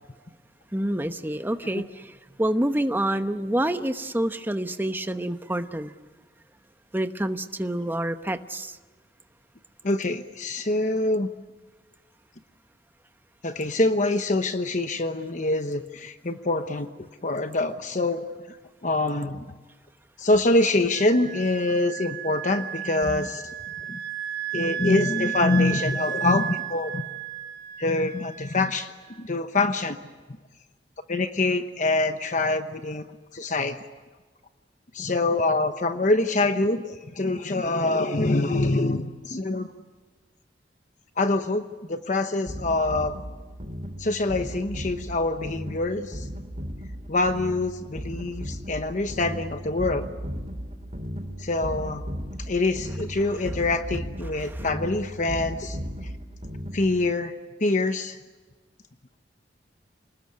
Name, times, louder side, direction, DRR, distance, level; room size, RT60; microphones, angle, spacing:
voice 1, 0.7-5.9 6.9-8.8 53.2-53.4 54.4-54.7, right 1 dB, 10° right, 9 dB, 1.0 m, -28 dB
voice 2, 9.8-11.3 13.4-16.9 17.2-18.6 18.8-19.4 20.2-23.4 23.9-24.0 24.5-27.0 27.8-28.9 29.2-30.0 31.1-33.0 33.3-33.8 34.9-39.7 41.2-41.6 41.9-43.2 44.0-46.3 47.1-50.1 51.4-52.0 52.4-56.1 56.7-57.3 57.6-58.2, left 2 dB, 45° left, 8 dB, 1.0 m, -25 dB
Wind instrument woodwind instrument, 20.9-29.2, right 10 dB, 80° right, 3.1 m, -34 dB
sound 1, 42.5-57.1, equal, 40° right, 2.9 m, -36 dB
27.5 x 19.5 x 9.6 m, 1.3 s
head